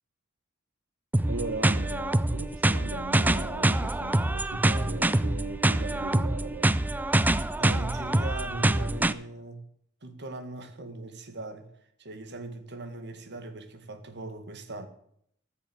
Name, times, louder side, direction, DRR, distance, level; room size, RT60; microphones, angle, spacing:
sound 1, 1.1-9.1, right 1 dB, 10° right, 0.4 m, -25 dB
voice 1, 1.3-6.8, right 3 dB, 75° right, 1.2 m, -38 dB
voice 2, 7.6-9.7 10.0-11.7 12.0-14.9, right 2 dB, 55° right, 1.9 m, -40 dB
14.5 x 7.0 x 7.9 m
head